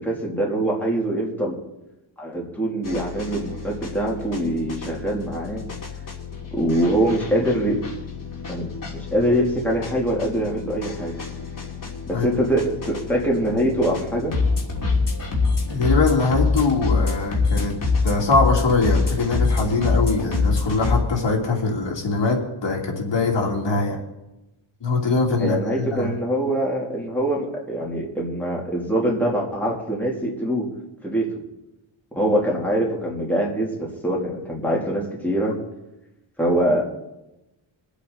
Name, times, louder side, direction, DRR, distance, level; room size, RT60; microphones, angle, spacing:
voice 1, 0.0-1.6 2.2-5.6 6.5-7.8 8.5-11.1 12.1-14.3 25.4-30.7 31.0-31.3 32.1-35.6 36.4-36.8, right 1 dB, 5° left, -4 dB, 2.7 m, -23 dB
sound 1, 2.8-21.0, left 4 dB, 40° left, 2.9 m, -26 dB
voice 2, 15.7-17.8 18.0-24.0 24.8-25.6 25.9-26.1, left 3 dB, 60° left, -1 dB, 2.8 m, -22 dB
23.0 x 8.3 x 4.0 m, 0.96 s
wide cardioid pair, 145°, 49 cm